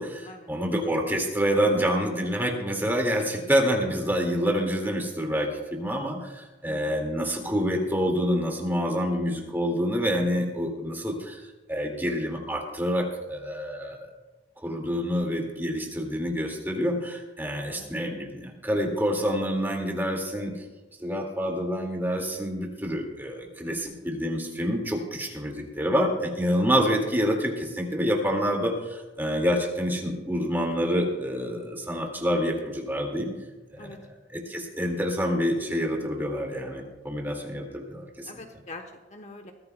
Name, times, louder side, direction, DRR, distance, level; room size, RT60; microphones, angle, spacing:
voice 1, 0.0-11.4 11.7-14.1 14.6-20.5 21.0-33.3 33.7-33.9 34.3-38.3, equal, 10° right, 1 dB, 2.0 m, -27 dB
voice 2, 6.7-7.1 17.4-17.9 23.7-24.0 33.8-34.0 38.2-38.8 39.1-39.5, left 2 dB, 40° left, 5 dB, 1.0 m, -44 dB
22.0 x 14.5 x 2.2 m, 1.2 s
head